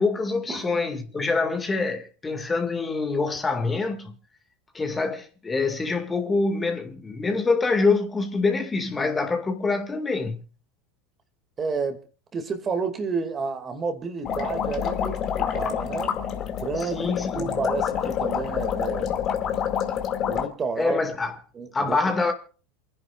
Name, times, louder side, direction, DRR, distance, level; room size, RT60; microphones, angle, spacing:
voice 1, 0.0-4.2 4.7-10.4 16.8-17.5 20.8-21.4 21.7-22.3, left 3 dB, 20° left, 2.1 m, -25 dB
voice 2, 11.6-12.0 12.3-16.2 16.6-19.2 20.2-21.0 21.5-22.0, right 5 dB, 25° right, 2.3 m, -30 dB
sound 1, 14.2-20.5, left 8 dB, 40° left, 2.3 m, -27 dB
28.5 x 10.5 x 2.5 m
figure-of-eight pair, 80°, 0 cm